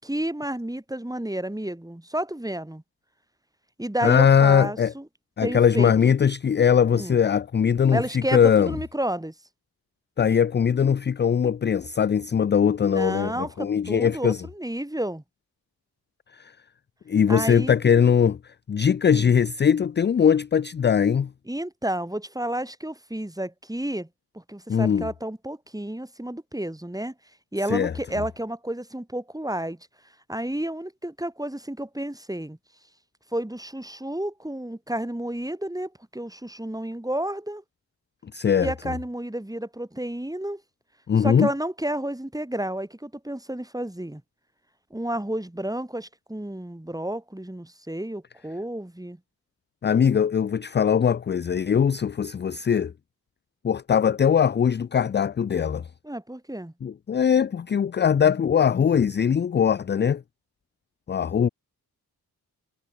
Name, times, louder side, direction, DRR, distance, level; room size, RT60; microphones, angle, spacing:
voice 1, 0.0-2.8 3.8-5.0 5.4-6.1 6.9-7.2 7.9-9.3 12.9-15.2 17.3-17.7 19.1-19.3 21.5-24.1 24.3-27.1 27.5-29.8 30.3-32.6 33.3-37.6 38.6-40.6 41.2-44.2 44.9-49.2 56.0-56.7, right 1 dB, 10° right, 4.9 m, -31 dB
voice 2, 4.0-4.9 5.4-8.7 10.2-14.4 16.3-16.5 17.1-21.3 24.7-25.1 27.7-27.9 38.2-38.7 41.1-41.5 49.8-52.9 53.6-55.9 56.8-60.2 61.1-61.5, left 7 dB, 30° left, 0.4 m, -21 dB
cardioid pair, 55°, 39 cm